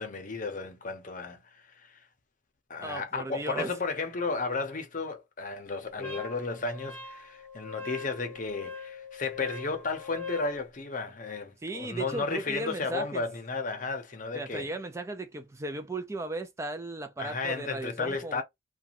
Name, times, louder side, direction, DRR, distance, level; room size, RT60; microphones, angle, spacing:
voice 1, 0.0-2.0 2.7-14.7 17.2-18.4, left 4 dB, 45° left, 0.7 m, -34 dB
voice 2, 2.8-3.7 6.0-6.1 11.6-13.2 14.3-18.4, right 2 dB, 15° right, 0.3 m, -36 dB
Wind instrument woodwind instrument, 6.0-10.6, left 4 dB, 10° left, 0.8 m, -42 dB
2.5 x 2.3 x 2.8 m
head